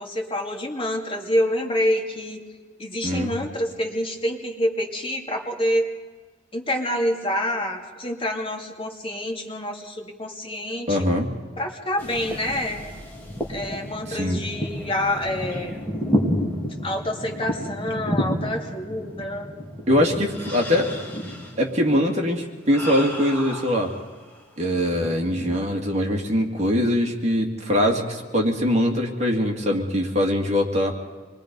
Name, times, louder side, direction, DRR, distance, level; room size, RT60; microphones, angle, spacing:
voice 1, 0.0-2.4 2.8-5.9 6.5-11.1 11.6-12.9 13.5-15.8 16.8-19.5, left 1 dB, 30° left, 1 dB, 2.5 m, -27 dB
voice 2, 10.9-11.3 14.1-14.4 19.9-20.9 21.6-23.9 24.6-30.9, left 1 dB, 35° right, 1 dB, 2.4 m, -22 dB
sound 1, 12.0-24.4 24.8-25.6, equal, 10° left, 3.0 m, -31 dB
26.5 x 22.0 x 5.4 m, 1.4 s
head